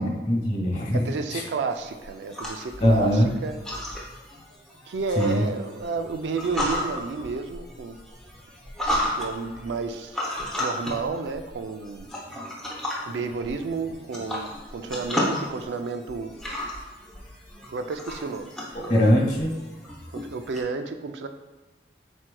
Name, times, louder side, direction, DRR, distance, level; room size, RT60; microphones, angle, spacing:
voice 1, 0.0-1.0 1.3-1.4 2.8-3.3 5.2-5.4 18.9-19.5, equal, 40° left, -2 dB, 1.3 m, -21 dB
voice 2, 0.9-3.6 4.9-8.0 9.2-10.2 10.6-12.1 13.0-16.3 17.7-18.5 18.8-19.1 20.1-21.3, right 4 dB, 85° right, 8 dB, 0.4 m, -31 dB
sound 1, 1.7-20.6, left 1 dB, 5° left, 0.7 m, -34 dB
4.4 x 4.4 x 2.2 m, 1.2 s
head